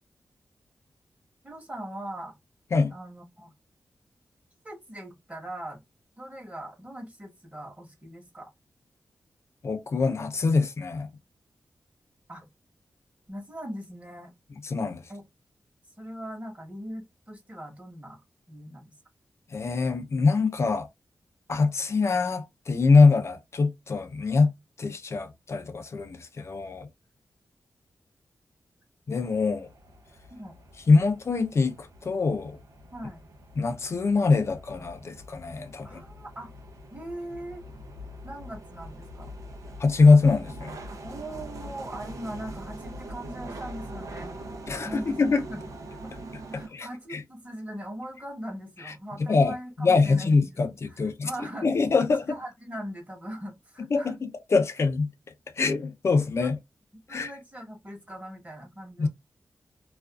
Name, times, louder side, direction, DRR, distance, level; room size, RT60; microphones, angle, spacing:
voice 1, 1.4-2.3 2.9-3.5 4.6-5.8 6.2-8.5 12.3-12.5 13.3-14.3 15.1-15.2 16.0-18.2 18.5-18.9 30.3-30.6 32.9-33.2 35.8-36.5 36.9-37.6 38.2-39.3 41.0-44.4 44.8-45.6 46.0-46.1 46.5-51.7 52.0-54.2 56.4-56.5 57.1-59.1, right 1 dB, 25° right, 1.1 m, -40 dB
voice 2, 9.6-11.1 14.6-15.0 19.5-20.9 21.5-24.5 24.8-26.9 29.1-29.7 30.9-32.6 33.6-36.0 39.8-40.8 44.7-45.4 46.5-47.2 48.9-49.0 49.3-51.3 51.6-52.4 53.9-55.1 55.6-56.6 57.1-57.3 59.0-59.1, left 4 dB, 50° left, 0.5 m, -23 dB
sound 1, 29.2-46.7, right 1 dB, 70° right, 0.5 m, -43 dB
2.4 x 2.3 x 2.3 m
wide cardioid pair, 95°, 6 cm